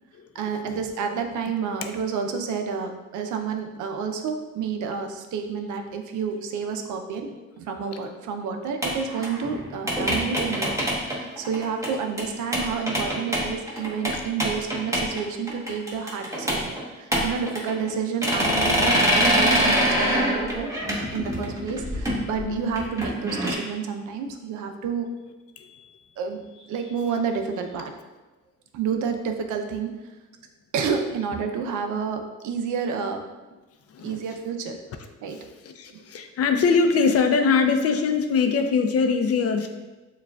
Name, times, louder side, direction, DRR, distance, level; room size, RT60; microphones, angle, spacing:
voice 1, 0.3-7.3 7.6-10.7 11.0-20.7 21.1-25.1 26.2-27.9 28.7-29.9 30.7-33.2 34.0-34.8 35.2-35.4 35.9-36.0, right 6 dB, 75° right, 5 dB, 0.5 m, -29 dB
sound 1, 8.8-11.9 12.2-12.3 12.5-15.2 15.5-16.8 17.1-17.9 18.2-23.5, equal, 10° right, 1.1 m, -24 dB
voice 2, 25.6-26.0 33.9-34.2 35.3-39.7, left 5 dB, 55° left, 7 dB, 0.5 m, -22 dB
6.6 x 2.4 x 2.3 m, 1.1 s
cardioid pair, 90°, 30 cm